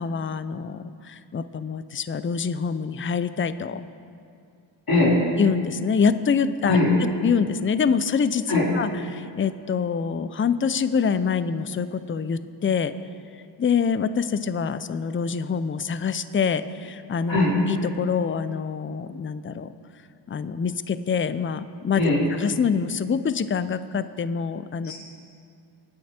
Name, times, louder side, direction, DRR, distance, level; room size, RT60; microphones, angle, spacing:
voice 1, 0.0-3.8 5.4-6.8 7.2-12.9 13.6-17.4 17.7-19.7 20.3-24.9, left 6 dB, 25° left, 13 dB, 0.5 m, -25 dB
voice 2, 4.9-5.2 6.7-6.9 8.5-8.7 17.3-17.5 22.0-22.2 24.8-24.9, left 2 dB, 45° left, -8 dB, 4.2 m, -20 dB
23.5 x 9.5 x 4.4 m, 2.3 s
cardioid pair, 95°, 48 cm